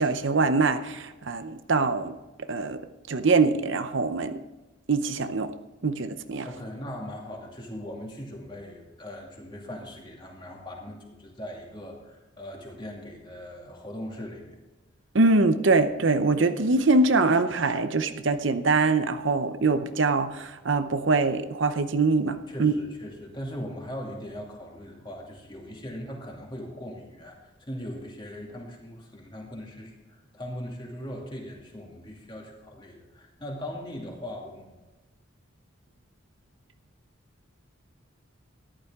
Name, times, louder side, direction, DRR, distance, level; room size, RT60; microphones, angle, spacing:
voice 1, 0.0-2.2 2.5-2.8 3.1-4.4 4.9-5.5 5.8-6.5 15.1-22.7, right 3 dB, 65° right, 10 dB, 0.7 m, -23 dB
voice 2, 6.5-14.6 22.5-34.7, equal, 20° left, -1 dB, 2.4 m, -39 dB
13.5 x 11.5 x 3.6 m, 1.1 s
head